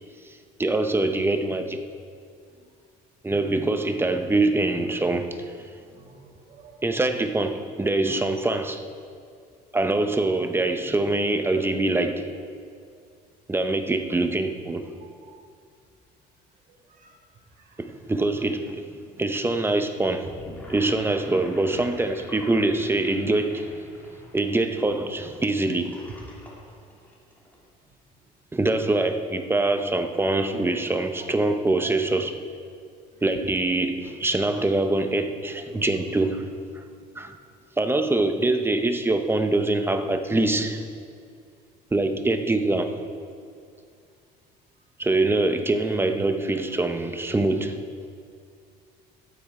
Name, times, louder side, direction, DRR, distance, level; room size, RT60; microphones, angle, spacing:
voice 1, 0.6-1.8 3.2-5.5 6.8-8.8 9.7-12.2 13.5-14.9 17.8-18.8 19.2-20.3 20.7-23.7 24.3-26.0 28.5-32.4 33.2-36.5 37.2-37.4 37.8-40.8 41.9-42.9 45.0-47.8, right 2 dB, 15° right, 7 dB, 0.7 m, -24 dB
voice 2, 5.9-6.8 11.5-11.6 15.0-15.4 16.7-17.2 17.6-17.9 30.6-30.7 31.2-31.3 33.1-33.2 34.9-35.0 45.1-45.2, right 5 dB, 50° right, 1 dB, 1.9 m, -52 dB
Gurgling / Sink (filling or washing), 20.2-27.6, equal, 10° left, 2.8 m, -46 dB
12.0 x 8.9 x 4.8 m, 2.3 s
cardioid pair, 110°, 17 cm